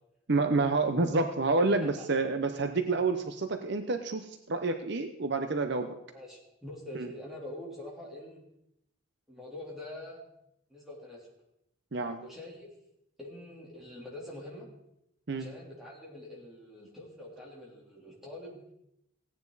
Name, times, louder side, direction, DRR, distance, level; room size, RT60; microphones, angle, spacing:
voice 1, 0.3-5.9 6.9-7.1 11.9-12.2 15.3-15.5, right 3 dB, 55° right, 7 dB, 0.8 m, -28 dB
voice 2, 1.6-2.2 6.1-8.4 9.3-10.2 10.7-11.3 12.2-12.7 13.2-14.7 15.3-18.6, left 1 dB, ahead, -5 dB, 3.4 m, -45 dB
16.5 x 9.6 x 4.0 m, 0.81 s
head